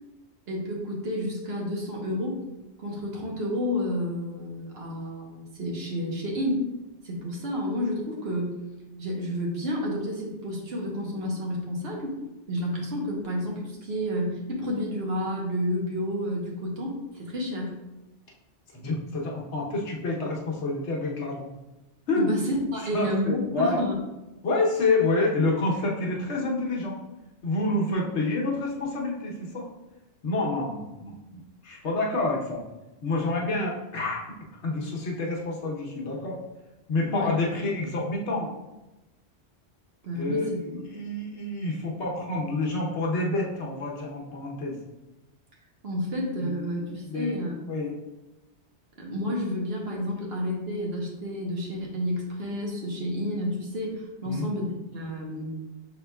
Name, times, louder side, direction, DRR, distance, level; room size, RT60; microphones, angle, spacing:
voice 1, 0.5-2.4 2.8-6.7 7.0-8.6 9.0-12.1 12.5-17.8 22.1-23.9 37.1-37.3 40.0-40.5 45.8-47.5 49.0-55.5, equal, 60° right, -2 dB, 1.2 m, -30 dB
voice 2, 18.7-21.5 22.1-22.3 22.9-23.8 24.4-26.9 27.4-29.7 30.2-31.1 31.6-32.6 33.0-34.3 34.6-36.4 36.9-38.5 40.1-44.8 46.4-47.4 47.7-47.9 54.2-54.5, left 2 dB, 75° left, -2 dB, 1.2 m, -28 dB
6.0 x 3.6 x 2.3 m, 1.0 s
omnidirectional pair, 1.2 m